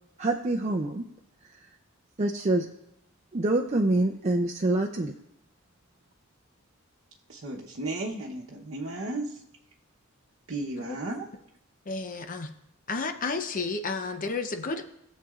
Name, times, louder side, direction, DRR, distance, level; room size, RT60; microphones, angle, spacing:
voice 1, 0.2-1.1 2.2-2.7 3.3-5.1, right 2 dB, 35° right, 2 dB, 0.5 m, -26 dB
voice 2, 7.3-9.4 10.5-11.3, right 2 dB, 70° right, -3 dB, 1.0 m, -34 dB
voice 3, 11.9-12.5 12.9-14.8, left 4 dB, 40° left, 7 dB, 0.7 m, -32 dB
18.5 x 7.5 x 2.4 m, 0.79 s
head